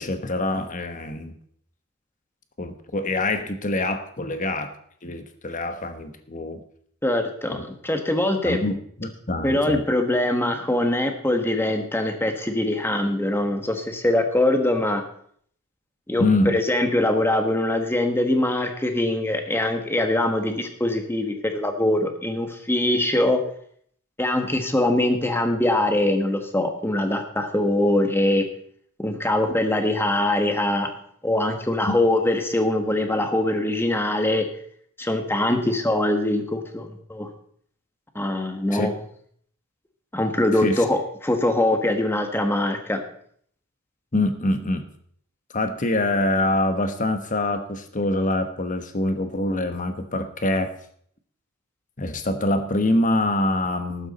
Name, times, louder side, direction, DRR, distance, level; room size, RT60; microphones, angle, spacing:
voice 1, 0.0-1.3 2.6-4.7 5.0-6.6 7.5-7.6 8.4-9.8 16.2-16.6 31.9-32.0 38.7-38.9 40.6-40.8 44.1-44.9 45.5-50.7 52.0-54.1, left 2 dB, 35° left, 8 dB, 1.2 m, -25 dB
voice 2, 7.0-8.6 9.4-15.0 16.1-23.4 24.2-28.4 29.0-30.9 31.2-34.5 35.0-37.3 38.1-38.9 40.1-43.0, left 1 dB, 10° left, 5 dB, 1.4 m, -23 dB
14.0 x 12.0 x 4.2 m, 0.62 s
head